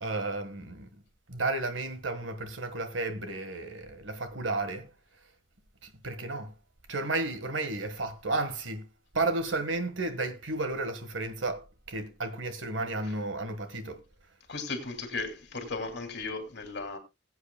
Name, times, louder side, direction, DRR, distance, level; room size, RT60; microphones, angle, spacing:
voice 1, 0.0-1.0 1.3-4.9 5.8-6.5 6.9-8.8 9.1-14.0, right 2 dB, 75° right, 1.5 m, -33 dB
voice 2, 14.5-17.0, left 3 dB, 60° left, 2.6 m, -36 dB
20.5 x 8.0 x 2.2 m
head